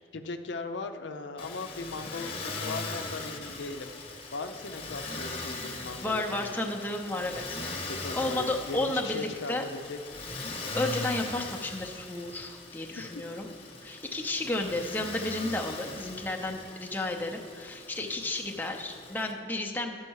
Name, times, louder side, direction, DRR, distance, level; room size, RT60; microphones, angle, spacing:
voice 1, 0.1-3.9 4.3-6.7 7.9-10.0 13.0-13.2, left 3 dB, 80° left, 7 dB, 0.6 m, -38 dB
Motor vehicle (road), 1.4-19.3, left 3 dB, 30° left, 1.1 m, -40 dB
voice 2, 6.0-7.6 8.1-9.6 10.7-13.5 13.8-20.0, left 2 dB, 10° left, 1 dB, 0.6 m, -32 dB
11.5 x 6.4 x 4.7 m, 2.4 s
head